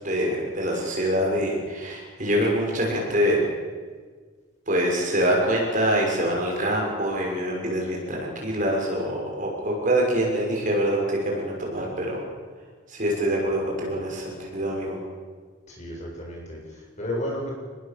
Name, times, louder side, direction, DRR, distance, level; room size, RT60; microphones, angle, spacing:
voice 1, 0.0-3.4 4.7-12.2 12.9-15.0, right 1 dB, 40° right, -1 dB, 6.5 m, -25 dB
voice 2, 15.7-17.5, left 1 dB, 35° left, -2 dB, 7.4 m, -33 dB
27.5 x 21.0 x 7.0 m, 1.5 s
head